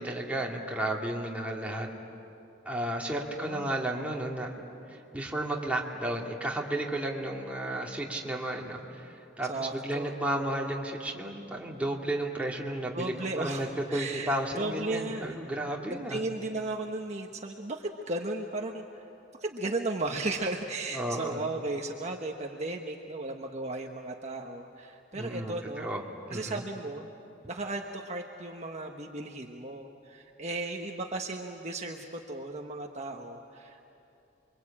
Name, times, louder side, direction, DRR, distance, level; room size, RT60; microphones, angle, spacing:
voice 1, 0.0-1.9 2.6-16.2 20.9-21.4 25.1-26.0 26.3-26.6, right 1 dB, 5° right, -2 dB, 2.5 m, -33 dB
voice 2, 3.3-3.8 9.5-10.6 12.9-15.4 15.9-19.1 19.4-25.9 26.3-27.1 27.5-33.9, right 2 dB, 35° right, 2 dB, 1.2 m, -35 dB
29.0 x 23.5 x 8.7 m, 2.8 s
head